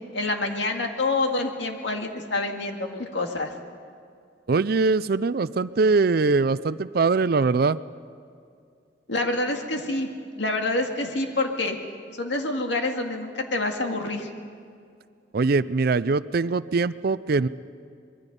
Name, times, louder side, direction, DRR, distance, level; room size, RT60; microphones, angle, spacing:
voice 1, 0.1-3.5 9.1-10.1 10.4-11.8 12.2-14.3, left 2 dB, 75° left, 3 dB, 2.1 m, -27 dB
voice 2, 4.5-7.8 15.3-17.5, right 4 dB, 55° right, 16 dB, 0.5 m, -22 dB
25.5 x 22.0 x 5.4 m, 2.4 s
head